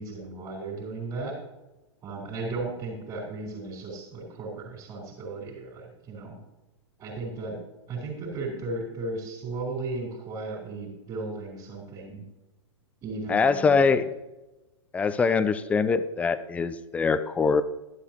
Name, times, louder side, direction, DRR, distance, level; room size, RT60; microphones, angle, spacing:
voice 1, 0.0-1.4 2.0-6.4 7.0-7.6 7.9-12.2 13.0-14.0, right 3 dB, 25° right, -4 dB, 3.9 m, -35 dB
voice 2, 13.3-14.0 14.9-17.6, left 5 dB, 10° left, 13 dB, 0.5 m, -23 dB
12.0 x 11.5 x 3.0 m, 1.0 s
figure-of-eight pair, 105°, 15 cm